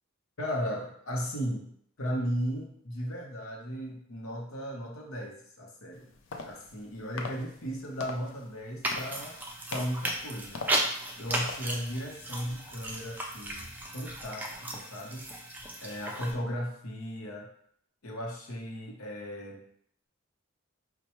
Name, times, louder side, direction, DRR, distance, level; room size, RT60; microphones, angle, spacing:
voice 1, 0.4-1.7 2.0-6.1 6.4-9.4 9.7-10.6 11.2-15.3 15.8-17.5 18.0-19.6, equal, 80° left, 0 dB, 0.8 m, -36 dB
sound 1, 5.9-12.0, left 4 dB, 60° left, 0.4 m, -44 dB
sound 2, 8.8-16.3, right 1 dB, 10° right, 0.3 m, -35 dB
4.3 x 2.2 x 2.9 m, 0.66 s
head